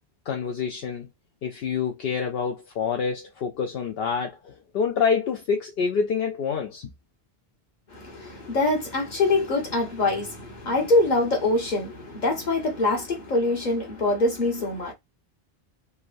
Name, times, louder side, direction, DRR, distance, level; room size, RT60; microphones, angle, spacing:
voice 1, 0.3-1.1 1.4-6.9, left 6 dB, 75° left, 0.8 m, -27 dB
voice 2, 7.9-14.9, left 2 dB, 45° left, 1.3 m, -24 dB
3.4 x 2.2 x 2.5 m
omnidirectional pair, 1.0 m